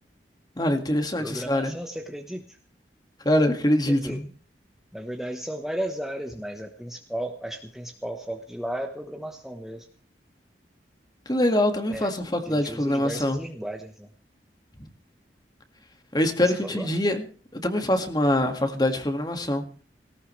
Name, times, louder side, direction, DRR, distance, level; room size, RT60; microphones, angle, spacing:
voice 1, 0.6-1.7 3.2-4.2 11.3-13.4 16.1-17.2 17.5-19.6, left 1 dB, 25° left, 6 dB, 2.0 m, -24 dB
voice 2, 1.2-2.6 3.9-4.2 4.9-9.9 11.9-12.1 12.4-14.1 16.6-16.9, right 1 dB, ahead, 3 dB, 1.1 m, -34 dB
18.0 x 18.0 x 3.3 m, 0.40 s
head